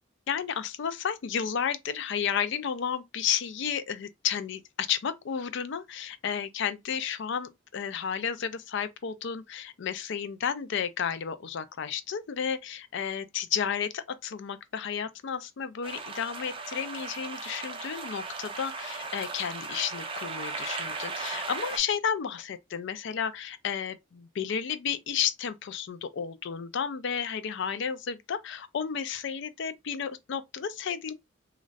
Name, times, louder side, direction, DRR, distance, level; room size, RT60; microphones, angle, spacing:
voice 1, 0.3-31.1, left 7 dB, 60° left, 0.4 m, -32 dB
sound 1, 15.8-21.8, right 4 dB, 25° right, 0.4 m, -37 dB
3.1 x 2.4 x 2.5 m
head